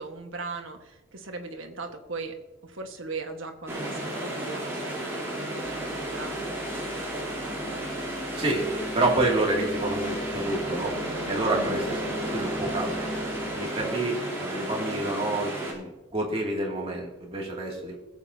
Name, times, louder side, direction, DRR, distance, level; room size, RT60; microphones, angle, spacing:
voice 1, 0.0-2.4 2.6-6.5 11.5-12.0, right 3 dB, 80° right, 4 dB, 1.5 m, -38 dB
sound 1, 3.7-15.7, right 1 dB, 15° right, 3.1 m, -33 dB
sound 2, 5.6-13.6, equal, 10° left, 0.6 m, -40 dB
voice 2, 8.3-10.9 11.3-13.2 13.5-18.0, right 2 dB, 30° right, -2 dB, 2.5 m, -28 dB
19.5 x 8.3 x 2.8 m, 1.1 s
head